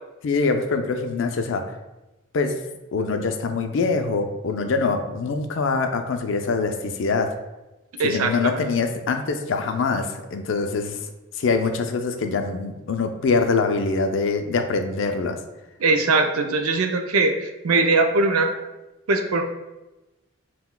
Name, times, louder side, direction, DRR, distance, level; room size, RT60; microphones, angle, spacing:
voice 1, 0.2-1.7 2.3-2.6 2.9-7.4 8.0-11.0 11.4-15.4, left 4 dB, 60° left, 6 dB, 0.3 m, -24 dB
voice 2, 8.0-8.6 15.8-18.5 19.1-19.4, right 3 dB, 85° right, 5 dB, 0.4 m, -21 dB
5.6 x 2.2 x 2.2 m, 1.0 s
head